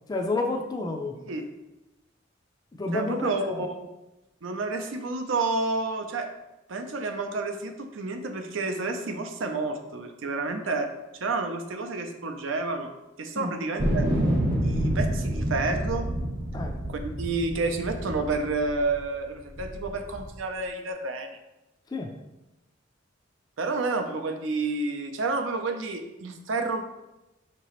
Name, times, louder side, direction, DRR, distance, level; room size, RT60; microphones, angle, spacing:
voice 1, 0.1-1.2 2.7-3.7 13.3-13.5 16.5-16.8 21.9-22.1, left 2 dB, 20° left, 3 dB, 0.3 m, -30 dB
voice 2, 2.9-3.9 4.4-6.3 6.7-12.9 13.2-14.1 14.6-16.1 16.9-21.3 23.6-26.8, right 3 dB, 75° right, 5 dB, 0.5 m, -30 dB
sound 1, 13.8-19.0 19.6-20.3, right 1 dB, 45° right, 0.9 m, -28 dB
5.6 x 3.0 x 3.0 m, 0.98 s
head